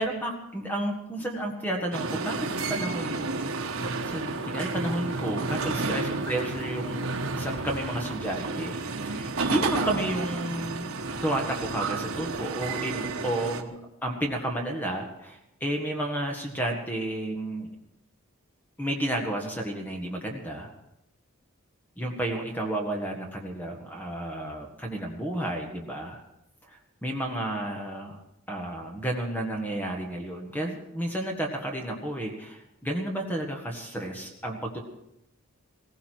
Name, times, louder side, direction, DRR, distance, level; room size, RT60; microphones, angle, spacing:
voice 1, 0.0-3.3 4.0-7.1 7.3-8.8 9.0-10.9 11.2-13.7 14.0-17.7 18.8-20.7 22.0-26.2 26.7-28.2 28.5-34.8, right 1 dB, 10° left, 1 dB, 1.6 m, -31 dB
sound 1, 1.9-13.6, right 3 dB, 75° right, 1.3 m, -31 dB
17.0 x 16.5 x 4.6 m, 0.85 s
head